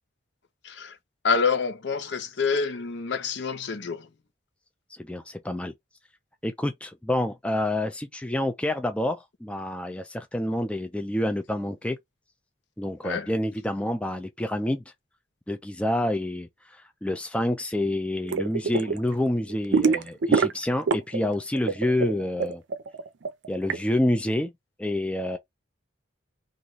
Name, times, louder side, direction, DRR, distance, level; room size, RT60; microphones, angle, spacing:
voice 1, 1.2-4.1 13.0-13.3, left 5 dB, 65° left, 0.7 m, -27 dB
voice 2, 5.0-5.7 6.4-12.0 12.8-14.8 15.5-22.6 23.5-24.5 24.8-25.4, left 1 dB, 5° left, 0.3 m, -28 dB
sound 1, 18.3-19.0 19.3-21.3 21.5-23.8, right 4 dB, 65° right, 0.5 m, -24 dB
3.0 x 2.5 x 3.9 m
head